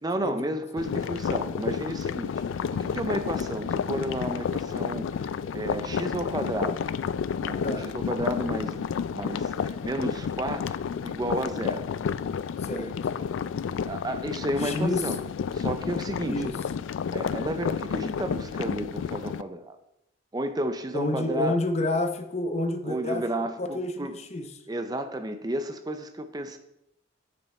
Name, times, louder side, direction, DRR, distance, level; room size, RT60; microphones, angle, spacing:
voice 1, 0.0-6.9 7.4-8.9 9.1-10.7 11.0-11.9 13.8-15.2 15.5-16.5 17.1-19.8 20.3-21.6 22.8-24.2 24.7-26.6, right 1 dB, 20° right, 8 dB, 0.5 m, -32 dB
sound 1, 0.8-19.4, left 7 dB, 85° left, 0.3 m, -31 dB
voice 2, 12.6-12.9 14.6-15.0 16.3-16.5 20.9-23.2 23.6-24.5, left 1 dB, 35° left, 7 dB, 0.7 m, -29 dB
7.1 x 6.4 x 4.3 m, 0.81 s
head